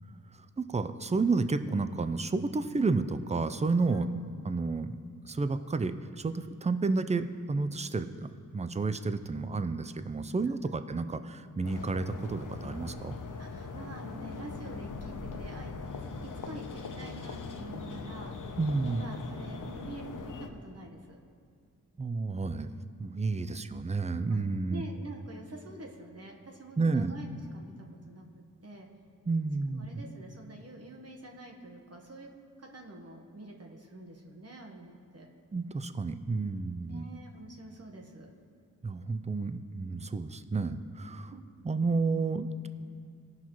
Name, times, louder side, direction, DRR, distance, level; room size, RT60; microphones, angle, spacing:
voice 1, 0.6-4.1 4.5-5.0 5.3-13.1 18.6-19.0 22.0-22.7 23.0-24.8 26.8-27.1 29.3-29.9 35.5-37.0 38.8-41.3 41.6-42.7, right 3 dB, 20° right, 11 dB, 0.4 m, -31 dB
sound 1, 11.6-20.5, left 4 dB, 60° left, 0.8 m, -41 dB
voice 2, 13.4-18.4 18.8-21.2 23.4-23.6 24.3-24.4 24.7-28.9 29.7-32.3 32.6-35.3 36.9-38.3 41.3-41.4, right 2 dB, 45° right, 1 dB, 1.2 m, -47 dB
16.5 x 5.7 x 3.1 m, 2.2 s
cardioid pair, 40°, 35 cm